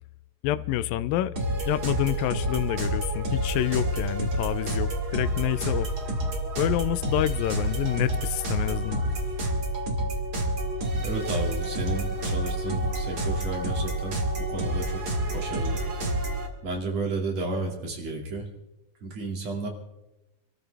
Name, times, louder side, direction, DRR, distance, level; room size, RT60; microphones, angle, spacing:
voice 1, 0.4-1.3 1.7-5.9 6.6-9.1, left 13 dB, 90° left, 2.4 m, -27 dB
sound 1, 1.3-16.5, right 1 dB, 30° right, 2.5 m, -29 dB
voice 2, 11.0-14.1 14.5-15.0 15.3-15.8 16.6-18.5 19.0-19.7, right 2 dB, 50° right, 3.4 m, -32 dB
27.0 x 14.0 x 3.4 m
omnidirectional pair, 4.0 m